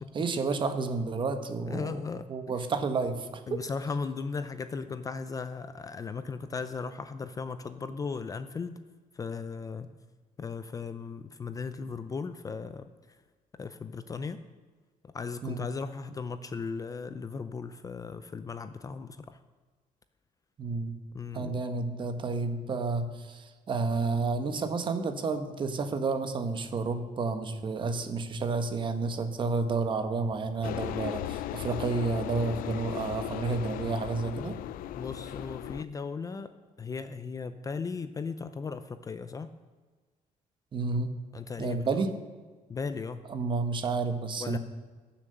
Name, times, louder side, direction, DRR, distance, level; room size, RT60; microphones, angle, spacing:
voice 1, 0.1-2.0 2.3-3.6 15.4-15.6 20.6-21.0 21.3-34.5 40.7-41.1 41.6-42.1 43.3-44.6, right 4 dB, 35° right, 8 dB, 1.3 m, -30 dB
voice 2, 1.7-2.7 3.5-8.8 9.1-9.9 10.4-13.2 13.5-14.4 15.0-19.4 21.1-21.6 35.0-36.5 36.8-39.5 41.3-42.0 42.7-43.3 44.4-44.6, left 5 dB, 25° left, 11 dB, 0.6 m, -37 dB
sound 1, 30.6-35.8, left 13 dB, 80° left, 0.5 m, -37 dB
21.5 x 7.3 x 6.8 m, 1.4 s
cardioid pair, 150°, 14 cm